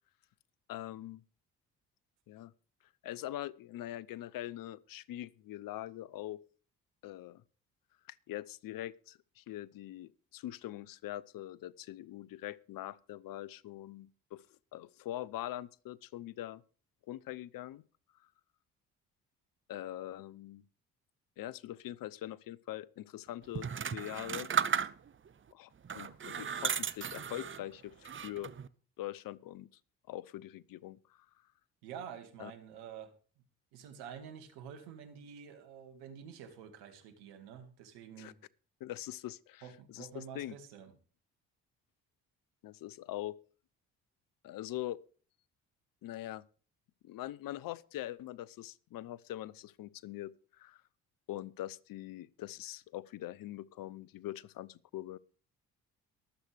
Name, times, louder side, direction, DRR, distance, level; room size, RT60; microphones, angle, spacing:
voice 1, 0.7-1.2 2.3-2.5 3.0-6.4 7.0-7.4 8.1-14.4 14.7-16.6 17.1-17.8 19.7-20.6 21.4-24.5 25.5-28.5 29.0-29.7 30.1-31.2 32.4-32.5 38.2-38.3 38.8-40.6 42.6-43.4 44.4-45.0 46.0-46.4 47.0-50.8 51.3-55.2, left 14 dB, 60° left, 0.7 m, -43 dB
sound 1, 23.6-25.3 25.8-27.7 28.1-28.7, right 7 dB, 30° right, 0.8 m, -35 dB
voice 2, 31.8-33.1 33.7-38.3 39.6-40.9, right 8 dB, 75° right, 2.2 m, -48 dB
23.0 x 8.1 x 3.4 m
hypercardioid pair, 50°, 39 cm